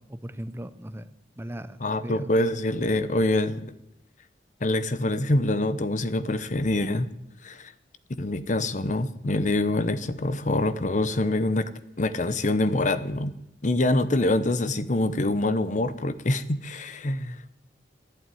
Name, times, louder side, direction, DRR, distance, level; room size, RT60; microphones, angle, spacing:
voice 1, 0.1-1.1 1.4-2.3, right 1 dB, 15° right, 13 dB, 0.6 m, -38 dB
voice 2, 1.8-3.7 4.6-7.1 7.4-7.7 8.2-11.7 12.0-13.3 13.6-17.6, left 2 dB, 45° left, 14 dB, 0.9 m, -25 dB
12.5 x 11.5 x 9.3 m, 0.87 s
head